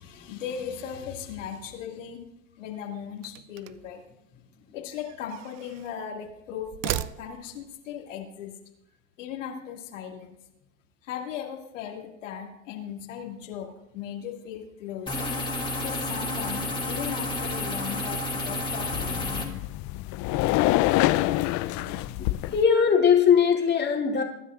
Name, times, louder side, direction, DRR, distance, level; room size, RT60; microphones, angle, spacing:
voice 1, 0.0-2.2 2.6-4.0 4.7-8.5 9.2-10.4 11.0-15.3 15.8-19.6, left 8 dB, 90° left, 0 dB, 2.3 m, -37 dB
sound 1, 3.2-4.0 4.9-6.0 6.6-7.7, right 15 dB, 45° right, 0.5 m, -36 dB
sound 2, 15.1-19.5, left 1 dB, 15° left, 2.5 m, -30 dB
sound 3, 18.9-22.6, left 17 dB, 50° left, 0.6 m, -26 dB
voice 2, 21.7-24.2, left 7 dB, 30° left, 0 dB, 2.2 m, -21 dB
22.5 x 10.0 x 2.5 m, 0.84 s
hypercardioid pair, 95°, 37 cm